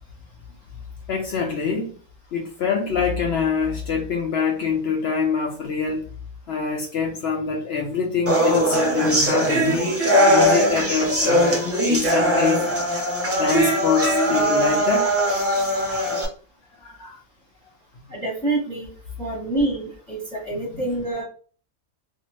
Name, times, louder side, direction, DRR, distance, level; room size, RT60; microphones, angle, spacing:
voice 1, 1.1-2.0 2.3-6.0 6.5-9.9 10.3-12.6 13.3-15.2 16.8-17.2 20.7-20.8, left 5 dB, 65° left, 0.7 m, -25 dB
sound 1, 8.3-16.2, equal, 20° right, 0.3 m, -20 dB
voice 2, 18.1-18.9 19.2-21.2, right 2 dB, 5° right, 1.0 m, -26 dB
2.7 x 2.4 x 3.0 m
omnidirectional pair, 1.5 m